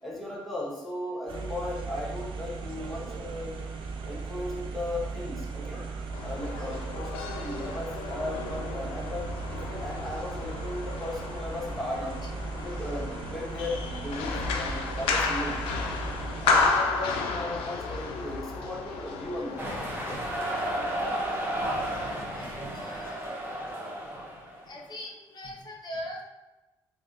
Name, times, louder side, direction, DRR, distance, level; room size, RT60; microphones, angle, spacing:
voice 1, 0.0-3.6 4.0-12.2 12.6-15.8 16.4-19.7, left 1 dB, ahead, -5 dB, 1.3 m, -36 dB
sound 1, 1.3-16.7, right 4 dB, 65° right, 0.4 m, -37 dB
sound 2, 6.1-22.2, left 4 dB, 85° left, 0.4 m, -33 dB
sound 3, 19.6-24.7, right 1 dB, 25° right, 0.9 m, -33 dB
voice 2, 22.3-23.1 24.7-26.2, left 1 dB, 50° left, -1 dB, 0.7 m, -40 dB
3.3 x 2.6 x 2.6 m, 1.0 s
supercardioid pair, 50°, 9 cm